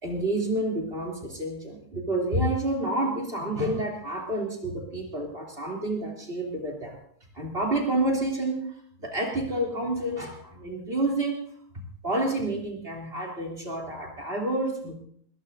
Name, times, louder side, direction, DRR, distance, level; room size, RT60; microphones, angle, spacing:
voice 1, 0.0-7.0 7.3-8.6 9.0-11.4 12.0-14.9, right 1 dB, 40° right, 0 dB, 3.4 m, -29 dB
20.5 x 20.5 x 2.7 m, 0.62 s
omnidirectional pair, 1.6 m